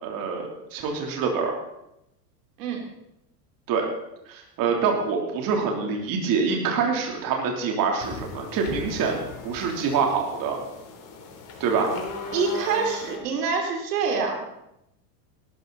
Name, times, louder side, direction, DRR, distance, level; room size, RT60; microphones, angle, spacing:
voice 1, 0.0-1.5 3.7-3.8 4.3-10.6 11.6-11.9, right 5 dB, 40° right, 1 dB, 3.2 m, -25 dB
sound 1, 8.0-13.2, left 3 dB, 40° left, 3.7 m, -38 dB
voice 2, 12.3-14.4, right 5 dB, 70° right, 2 dB, 3.3 m, -26 dB
18.0 x 13.5 x 4.0 m, 0.84 s
hypercardioid pair, 115°, 49 cm